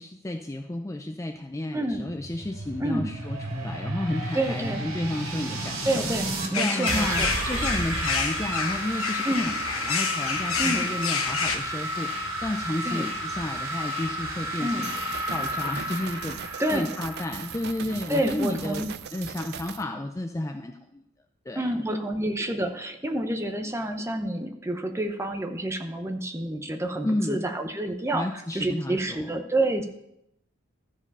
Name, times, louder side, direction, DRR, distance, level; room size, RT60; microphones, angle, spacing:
voice 1, 0.0-6.1 6.6-14.9 15.3-18.8 19.1-21.0 21.5-21.7 27.0-27.4 28.1-29.4, left 1 dB, 15° left, 5 dB, 0.4 m, -32 dB
voice 2, 1.7-2.0 2.8-3.1 4.3-4.8 5.8-7.3 9.2-9.5 10.6-10.9 12.8-13.1 14.6-14.9 16.6-16.9 18.1-18.9 21.6-29.8, right 1 dB, 15° right, 5 dB, 0.7 m, -28 dB
sound 1, 1.9-6.5 6.9-18.4, right 1 dB, 75° right, 2.2 m, -32 dB
sound 2, 6.5-11.6, left 5 dB, 80° left, 1.1 m, -29 dB
sound 3, 14.8-19.8, right 7 dB, 50° right, 0.4 m, -39 dB
13.5 x 5.0 x 5.4 m, 0.80 s
head